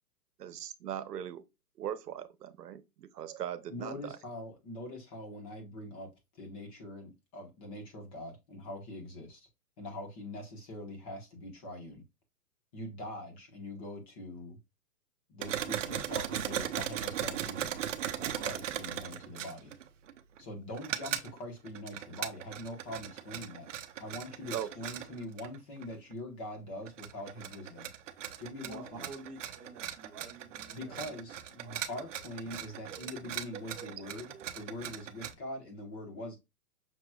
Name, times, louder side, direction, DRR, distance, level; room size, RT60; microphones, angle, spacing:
voice 1, 0.4-1.4 1.8-4.2 24.5-24.7 33.8-34.0 34.3-34.5, right 10 dB, 90° right, 0.9 m, -40 dB
voice 2, 3.7-6.1 6.4-9.5 9.8-12.0 12.7-14.6 15.3-17.8 18.2-19.7 20.4-23.7 24.0-27.9 28.4-29.1 30.7-36.4, left 1 dB, 25° left, 1.1 m, -43 dB
sound 1, 15.4-20.4 20.8-21.4 21.7-26.1 26.9-35.3, right 10 dB, 55° right, 0.7 m, -38 dB
voice 3, 28.6-31.1 31.6-32.2, right 4 dB, 5° right, 0.6 m, -49 dB
6.0 x 3.0 x 2.3 m
hypercardioid pair, 165°, 46 cm